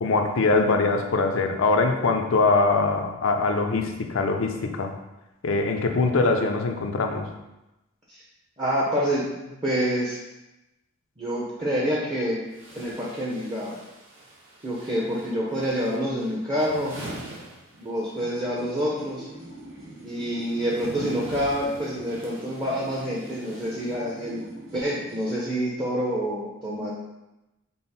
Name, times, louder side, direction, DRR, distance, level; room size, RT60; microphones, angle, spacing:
voice 1, 0.0-4.9 5.4-7.3, left 3 dB, 70° left, 5 dB, 0.5 m, -22 dB
voice 2, 8.6-10.2 11.2-12.4 12.8-13.8 14.6-16.9 17.8-19.3 20.0-24.4 24.7-26.9, equal, 25° right, -6 dB, 0.6 m, -27 dB
sound 1, 11.6-11.7 12.5-18.3 18.5-24.4, right 1 dB, 60° right, 1.0 m, -43 dB
sound 2, 18.0-25.5, right 1 dB, 75° right, 1.5 m, -44 dB
5.4 x 2.0 x 4.1 m, 0.97 s
head